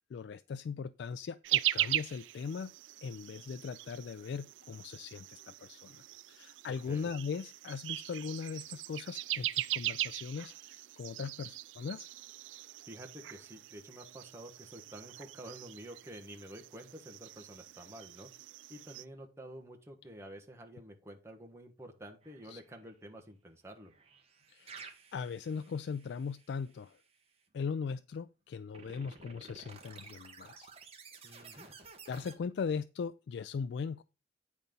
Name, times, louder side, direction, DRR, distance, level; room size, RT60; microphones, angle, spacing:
voice 1, 0.1-2.7 3.0-12.1 22.5-22.6 24.5-27.0 27.5-30.7 31.3-31.7 32.1-34.0, left 5 dB, 65° left, 0.3 m, -39 dB
sound 1, 1.4-19.0, right 14 dB, 85° right, 0.3 m, -40 dB
voice 2, 6.8-7.1 12.8-18.3 18.7-23.9 31.2-31.7, right 1 dB, 15° right, 1.3 m, -49 dB
sound 2, 22.2-22.8 23.9-27.0 28.7-32.4, right 5 dB, 35° right, 1.2 m, -53 dB
9.2 x 4.2 x 5.2 m
head